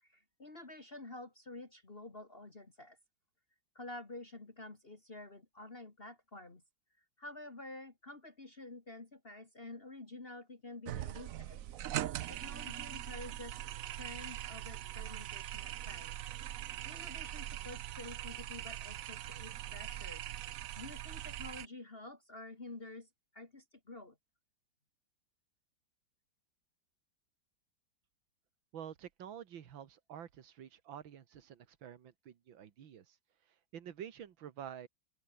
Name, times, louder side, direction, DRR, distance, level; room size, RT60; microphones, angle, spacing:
voice 1, 0.0-3.0 3.7-6.6 7.2-11.7 12.3-16.2 16.8-20.2 20.8-23.1 23.3-24.2, left 2 dB, 30° left, 2.4 m, -49 dB
sound 1, 10.9-21.7, right 12 dB, 65° right, 0.8 m, -42 dB
voice 2, 28.7-33.2 33.7-34.9, right 9 dB, 85° right, 2.2 m, -49 dB
open air
omnidirectional pair, 2.1 m